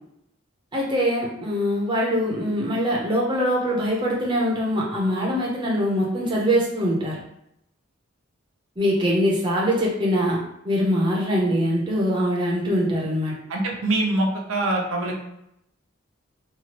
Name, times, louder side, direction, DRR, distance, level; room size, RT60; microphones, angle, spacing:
voice 1, 0.7-7.2 8.8-10.4 10.6-13.3, equal, 20° right, -3 dB, 0.6 m, -23 dB
voice 2, 13.5-15.1, right 2 dB, 90° right, 0 dB, 0.6 m, -24 dB
3.0 x 2.3 x 2.8 m, 0.80 s
head